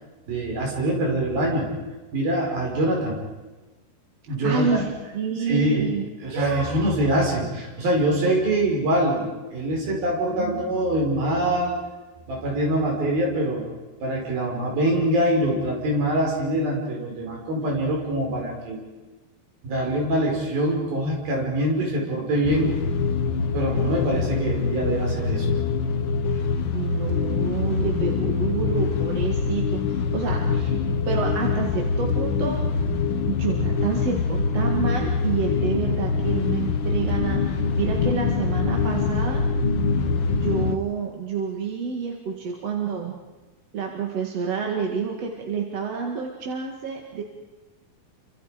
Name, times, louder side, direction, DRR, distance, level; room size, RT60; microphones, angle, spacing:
voice 1, 0.3-1.7 2.1-3.2 4.3-4.9 5.5-5.8 6.2-11.8 12.3-13.7 14.0-18.8 19.6-22.7 23.5-25.5, right 1 dB, 80° right, -1 dB, 7.0 m, -24 dB
voice 2, 4.4-4.9 5.1-6.1 6.3-6.9 10.3-10.7 19.8-20.1 26.3-30.7 31.1-32.7 33.3-39.4 40.3-43.1 43.7-47.2, right 6 dB, 50° right, 0 dB, 2.8 m, -29 dB
sound 1, 22.4-40.8, left 5 dB, 70° left, 1.2 m, -24 dB
28.5 x 26.0 x 5.1 m, 1.2 s
omnidirectional pair, 4.1 m